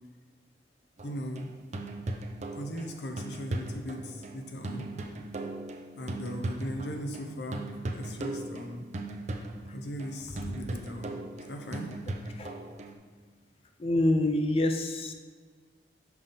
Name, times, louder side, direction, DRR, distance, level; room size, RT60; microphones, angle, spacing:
voice 1, 1.0-1.5 2.5-4.9 6.0-8.8 9.7-11.2 11.5-11.9, equal, 70° left, 4 dB, 0.7 m, -38 dB
sound 1, 1.0-7.3 7.5-12.9, right 2 dB, 40° right, 0.5 m, -38 dB
voice 2, 13.8-15.1, left 1 dB, 35° left, 5 dB, 0.4 m, -26 dB
5.7 x 5.4 x 3.7 m, 1.5 s
head